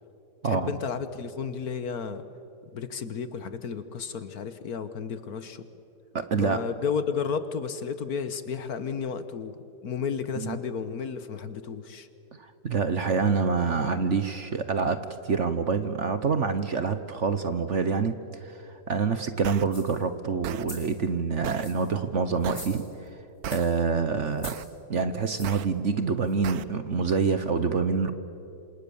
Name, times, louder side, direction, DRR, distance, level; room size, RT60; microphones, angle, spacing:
voice 1, 0.4-2.2 2.7-5.7 6.3-12.1, left 6 dB, 60° left, 11 dB, 1.5 m, -33 dB
voice 2, 6.1-6.6 10.4-10.6 12.4-18.1 18.4-22.8 23.5-24.5 24.9-28.1, right 5 dB, 50° right, 10 dB, 1.1 m, -26 dB
sound 1, 19.4-19.6 20.4-20.7 21.4-21.7 22.4-22.7 23.4-23.6 24.4-24.7 25.4-25.6 26.4-26.6, right 10 dB, 65° right, 1.1 m, -36 dB
sound 2, 19.6-20.0 20.5-21.0 21.5-21.9 22.4-23.1 23.5-23.8 24.3-24.7 25.4-25.7 26.3-26.4, left 2 dB, 35° left, 4.5 m, -45 dB
27.5 x 27.0 x 7.1 m, 2.8 s
omnidirectional pair, 2.0 m